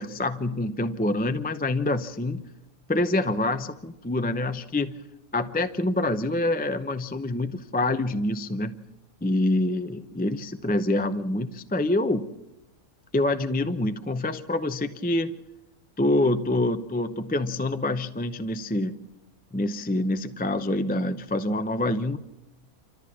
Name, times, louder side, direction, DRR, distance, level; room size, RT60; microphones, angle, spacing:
voice 1, 0.0-2.4 2.9-5.0 5.3-8.8 9.2-12.3 13.1-15.4 16.0-19.0 19.5-22.2, left 2 dB, 10° left, 9 dB, 0.5 m, -26 dB
27.0 x 14.0 x 7.3 m, 0.94 s
omnidirectional pair, 1.5 m